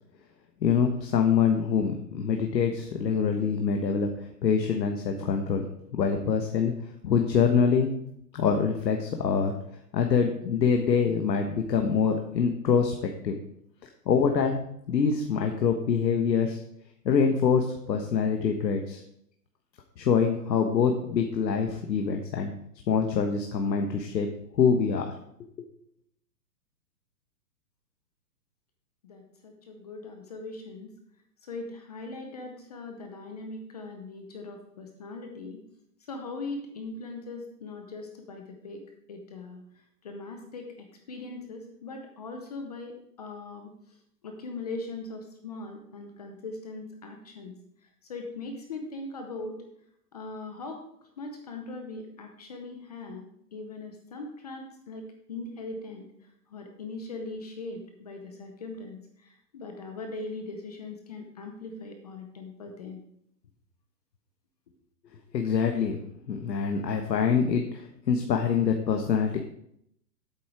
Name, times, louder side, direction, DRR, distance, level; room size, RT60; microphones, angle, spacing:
voice 1, 0.6-5.6 6.0-6.7 7.0-7.9 8.3-9.6 9.9-13.0 13.2-13.4 14.1-14.6 14.9-16.6 17.0-19.0 20.0-22.5 22.9-24.3 24.6-25.1 25.6-25.7 65.3-66.0 66.3-69.4, left 6 dB, 85° left, 4 dB, 1.4 m, -25 dB
voice 2, 29.0-30.9 31.5-35.6 36.1-38.8 39.1-39.6 40.0-43.7 44.2-47.5 48.1-49.6 50.1-50.8 51.2-56.1 56.5-63.0, left 3 dB, 25° left, 4 dB, 0.7 m, -40 dB
8.4 x 7.4 x 4.9 m, 0.72 s
hypercardioid pair, 170°, 49 cm